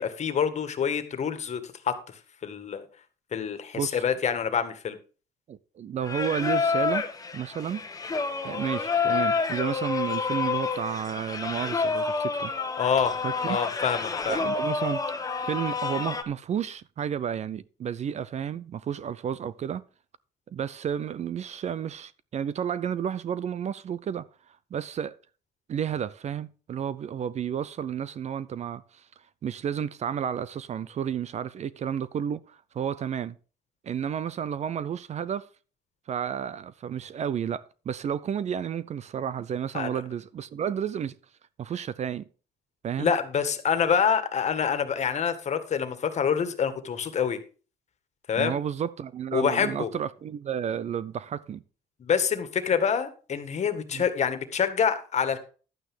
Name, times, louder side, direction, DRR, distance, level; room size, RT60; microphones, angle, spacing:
voice 1, 0.0-1.9 2.4-2.8 3.3-5.0 12.8-13.1 13.5-14.4 39.7-39.9 43.0-47.4 48.3-48.5 49.3-49.9 52.0-55.4, left 7 dB, 40° left, 1.8 m, -26 dB
voice 2, 5.5-7.1 7.3-7.9 8.4-12.5 13.2-13.6 14.3-15.0 15.4-19.8 20.5-24.3 24.7-25.2 25.7-29.1 29.4-33.4 33.8-35.5 36.1-41.1 41.6-42.2 42.8-43.1 48.4-51.6 53.9-54.0, right 8 dB, 40° right, 0.6 m, -31 dB
Singing, 6.0-16.2, left 5 dB, 20° left, 1.3 m, -29 dB
12.0 x 9.0 x 3.7 m
cardioid pair, 110°, 17 cm